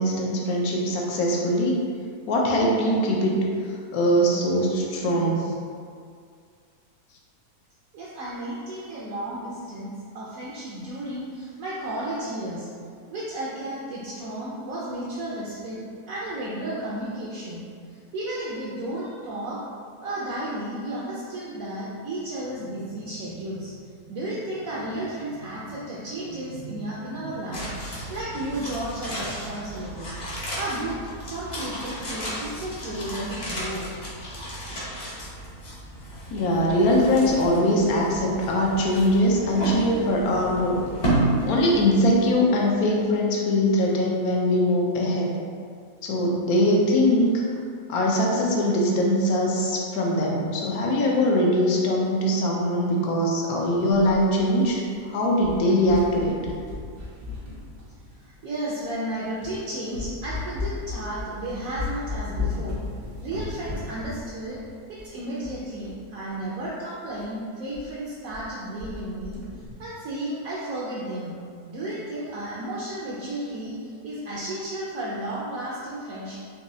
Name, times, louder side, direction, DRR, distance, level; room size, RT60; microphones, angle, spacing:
voice 1, 0.0-1.8 2.3-3.3 3.7-5.5 36.3-40.8 41.4-45.3 46.0-47.4 47.9-56.4, equal, 75° left, -2 dB, 1.1 m, -22 dB
voice 2, 7.9-12.7 13.1-15.8 16.1-19.6 20.0-33.9 58.2-62.8 63.2-64.6 64.9-69.4 69.8-71.4 71.7-76.4, right 1 dB, 70° right, -6 dB, 0.9 m, -33 dB
sound 1, 27.5-42.7 43.0-43.1, right 1 dB, 40° left, 0.7 m, -32 dB
sound 2, 53.9-55.0 55.3-58.3 58.9-59.0 59.4-59.6 59.9-66.0 66.3-66.4 66.6-66.7 67.1-67.3 67.7-67.9 68.1-68.5 68.8-69.7, left 4 dB, 85° right, 1.3 m, -35 dB
4.0 x 2.6 x 2.6 m, 2.2 s
omnidirectional pair, 1.6 m